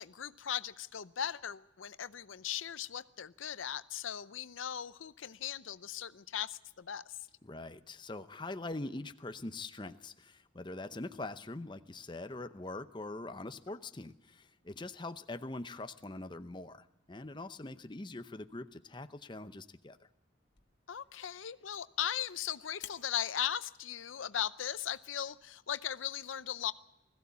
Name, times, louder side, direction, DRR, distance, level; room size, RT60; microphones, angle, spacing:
voice 1, 0.0-7.0 20.9-26.7, left 10 dB, 80° left, 15 dB, 0.6 m, -38 dB
voice 2, 7.4-20.0, left 2 dB, 25° left, 10 dB, 0.7 m, -43 dB
sound 1, 20.5-25.5, left 10 dB, 55° left, 1.5 m, -58 dB
21.0 x 15.5 x 8.4 m, 0.91 s
head